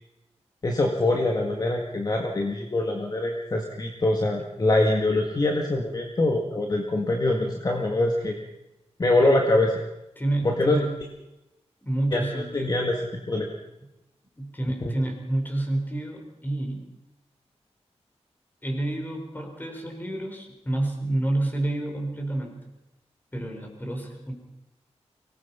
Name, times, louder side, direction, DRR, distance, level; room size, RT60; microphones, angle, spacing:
voice 1, 0.6-8.4 9.0-9.7 10.4-10.8 12.1-13.0 13.3-13.5 14.9-15.0, left 2 dB, 35° left, 2 dB, 1.9 m, -24 dB
voice 2, 10.2-11.0 11.8-12.8 14.4-16.9 18.6-22.6 23.3-24.3, right 1 dB, 15° left, 2 dB, 4.6 m, -29 dB
24.0 x 19.0 x 5.7 m, 0.96 s
wide cardioid pair, 140°, 11 cm